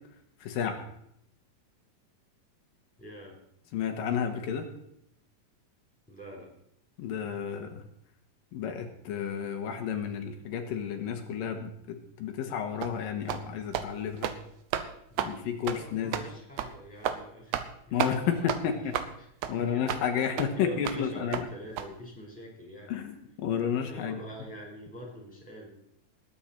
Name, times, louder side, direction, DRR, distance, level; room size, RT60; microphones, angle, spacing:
voice 1, 0.4-0.8 3.7-4.7 7.0-7.7 8.5-11.7 12.2-14.3 15.2-16.2 17.9-18.9 19.5-21.4 22.9-24.2, left 8 dB, 85° left, 4 dB, 3.1 m, -31 dB
voice 2, 3.0-3.4 6.1-6.5 15.1-18.7 19.2-19.3 19.6-23.0 23.8-25.7, equal, ahead, -1 dB, 4.3 m, -44 dB
sound 1, 12.8-13.0 13.3-13.5 13.7-13.9 14.2-14.4 14.7-14.9 15.2-15.3 15.7-15.8 16.1-16.3 16.6-16.7 17.0-17.2 17.5-17.7 18.0-18.1 18.5-18.6 18.9-19.1 19.4-19.5 19.9-20.0 20.4-20.5 20.9-21.0 21.3-21.4 21.8-21.9, right 10 dB, 75° right, 2.0 m, -31 dB
19.5 x 9.1 x 4.4 m, 0.74 s
omnidirectional pair, 3.9 m